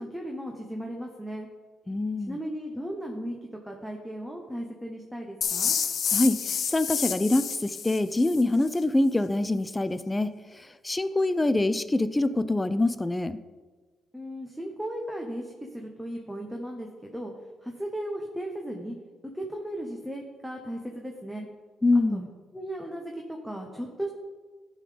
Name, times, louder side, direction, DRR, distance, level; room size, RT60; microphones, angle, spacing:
voice 1, 0.0-1.5 2.3-5.8 14.1-17.3 17.6-18.9 19.3-21.5 22.1-22.3 22.5-24.1, right 1 dB, ahead, 1 dB, 0.9 m, -36 dB
voice 2, 1.9-2.4 6.1-10.3 10.6-13.4 21.8-22.2, left 2 dB, 15° left, 13 dB, 0.4 m, -25 dB
sound 1, 5.4-8.4, left 7 dB, 60° left, 0.6 m, -29 dB
11.5 x 3.8 x 5.0 m, 1.4 s
cardioid pair, 90°, 0 cm